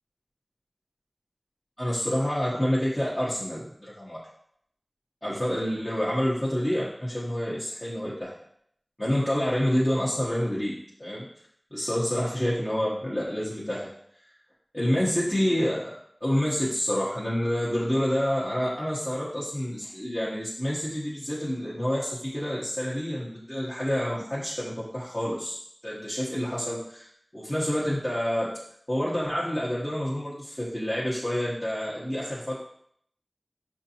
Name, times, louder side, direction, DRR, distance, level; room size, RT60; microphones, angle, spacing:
voice 1, 1.8-4.2 5.2-8.4 9.0-11.3 11.7-13.9 14.7-15.9 16.2-28.5 28.9-32.6, equal, 30° left, -8 dB, 0.9 m, -28 dB
4.9 x 2.6 x 2.8 m, 0.67 s
wide cardioid pair, 40°, 0 cm